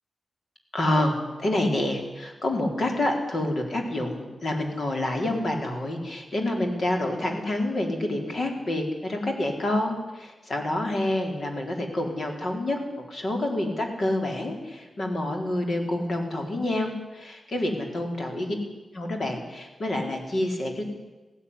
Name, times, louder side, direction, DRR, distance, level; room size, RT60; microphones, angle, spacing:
voice 1, 0.7-12.8 13.1-18.5 18.9-20.8, left 1 dB, 50° left, 2 dB, 4.2 m, -28 dB
17.0 x 16.0 x 9.9 m, 1.1 s
wide cardioid pair, 115°, 0 cm